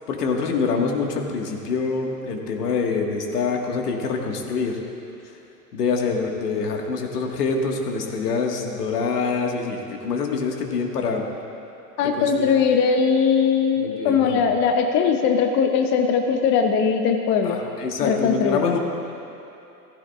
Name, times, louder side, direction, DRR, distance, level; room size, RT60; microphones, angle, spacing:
voice 1, 0.1-4.8 5.7-11.2 12.2-12.5 13.8-14.4 17.4-18.8, left 4 dB, 75° left, 1 dB, 1.7 m, -25 dB
voice 2, 12.0-17.6 18.0-18.7, left 6 dB, 25° left, 5 dB, 0.6 m, -20 dB
16.0 x 15.0 x 2.4 m, 2.8 s
hypercardioid pair, 115°, 47 cm